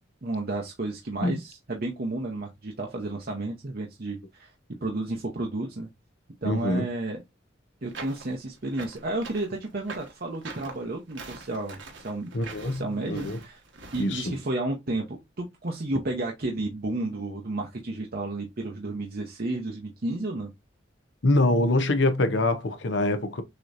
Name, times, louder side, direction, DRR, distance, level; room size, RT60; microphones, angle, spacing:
voice 1, 0.2-4.5 4.8-5.9 6.4-7.2 7.8-12.3 12.6-13.6 13.9-20.5, right 2 dB, 50° right, 0.8 m, -32 dB
voice 2, 6.4-6.9 12.3-12.8 13.1-13.4 14.0-14.2 21.2-23.4, left 2 dB, 65° left, 0.8 m, -24 dB
sound 1, 7.9-14.1, right 3 dB, 65° right, 1.3 m, -43 dB
6.6 x 3.0 x 2.5 m
head